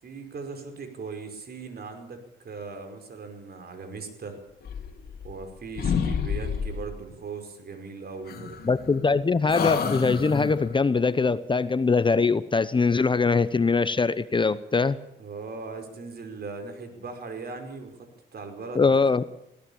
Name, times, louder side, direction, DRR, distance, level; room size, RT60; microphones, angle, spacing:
voice 1, 0.0-4.4 5.2-8.6 15.2-19.1, right 4 dB, 50° right, 7 dB, 5.2 m, -39 dB
sound 1, 4.6-5.5 5.8-6.9 8.3-9.1 9.5-10.7, left 6 dB, 50° left, 3.5 m, -29 dB
voice 2, 8.6-15.0 18.7-19.2, left 4 dB, 25° left, 14 dB, 0.9 m, -22 dB
21.5 x 16.5 x 7.2 m, 0.83 s
cardioid pair, 90°, 20 cm